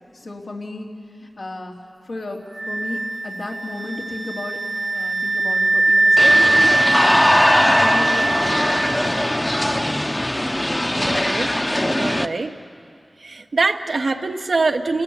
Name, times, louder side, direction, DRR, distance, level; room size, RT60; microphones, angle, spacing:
voice 1, 0.1-0.9 1.2-1.7 2.1-2.4 2.7-4.6 4.9-7.4 7.7-9.8, left 2 dB, 90° left, -2 dB, 3.0 m, -34 dB
sound 1, 2.6-9.4, right 2 dB, 60° right, 0.8 m, -20 dB
sound 2, 6.2-12.3, left 1 dB, 20° left, 0.8 m, -20 dB
voice 2, 11.0-11.5 12.0-12.5 13.2-15.0, right 3 dB, 85° right, 6 dB, 1.0 m, -23 dB
29.5 x 19.0 x 7.1 m, 2.5 s
wide cardioid pair, 60°, 0 cm